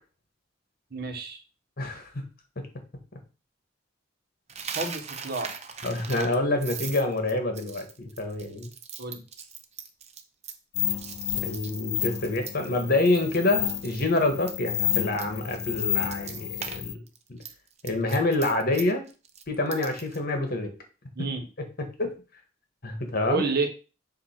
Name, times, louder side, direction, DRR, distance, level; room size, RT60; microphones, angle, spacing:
voice 1, 0.9-1.4 4.7-5.5 9.0-9.2 21.1-21.4 23.3-23.7, right 4 dB, 60° right, 5 dB, 1.3 m, -29 dB
voice 2, 1.8-2.2 2.6-2.7 5.8-8.7 11.4-17.0 17.3-17.4 17.8-19.0 19.5-20.7 21.6-21.7 22.0-22.1 22.8-23.4, left 2 dB, 55° left, 5 dB, 1.4 m, -27 dB
Coin (dropping), 4.5-12.8 13.1-13.4 13.7-16.8 17.1-20.2, right 7 dB, 35° right, 0.7 m, -40 dB
sound 1, 10.7-16.9, left 10 dB, 35° left, 0.3 m, -31 dB
7.5 x 2.8 x 5.8 m, 0.33 s
head